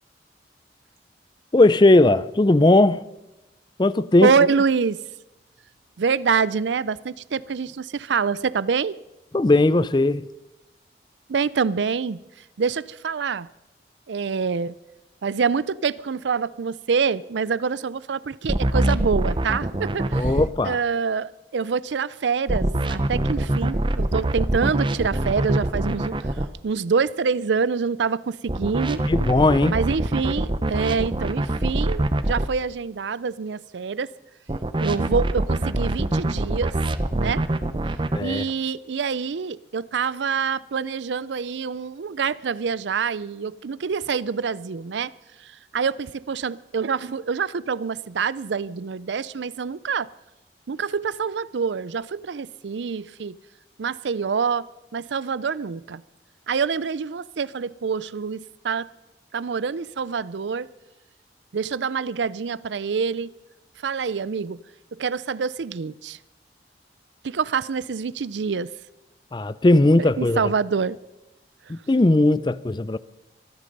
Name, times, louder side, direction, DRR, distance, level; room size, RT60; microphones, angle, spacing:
voice 1, 1.5-3.0 3.8-4.3 9.3-10.3 20.1-20.8 29.0-29.8 38.1-38.5 69.3-70.5 71.7-73.0, left 2 dB, 25° left, 0.4 m, -18 dB
voice 2, 4.2-5.0 6.0-9.0 11.3-12.2 12.6-13.5 14.1-14.7 15.2-20.3 20.6-26.2 26.6-29.0 29.7-34.1 34.8-36.8 37.1-37.4 38.2-45.1 45.7-50.1 50.7-53.4 53.8-56.0 56.5-58.9 59.3-60.7 61.5-63.3 63.8-64.6 64.9-66.2 67.2-68.7 70.0-71.0, right 5 dB, 85° right, 0.5 m, -26 dB
sound 1, 18.5-20.5 22.5-26.5 28.5-32.5 34.5-38.2, right 1 dB, 25° right, 0.6 m, -24 dB
24.5 x 10.0 x 5.3 m
head